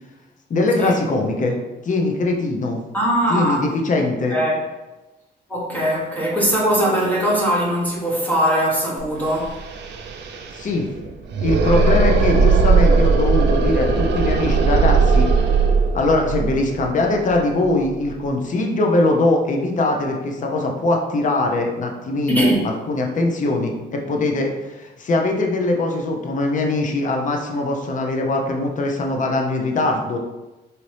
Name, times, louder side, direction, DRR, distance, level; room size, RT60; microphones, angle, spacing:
voice 1, 0.5-1.6 1.8-2.8 3.3-4.4 10.5-10.9 11.4-15.3 15.9-30.2, left 2 dB, 40° left, 1 dB, 0.7 m, -21 dB
voice 2, 2.9-3.7 4.3-4.6 5.5-9.6 22.3-22.7, right 1 dB, 10° left, -4 dB, 0.9 m, -20 dB
sound 1, 9.0-9.1 9.3-18.1, right 4 dB, 60° right, 0.6 m, -18 dB
4.2 x 2.7 x 3.3 m, 1.1 s
cardioid pair, 90°, 20 cm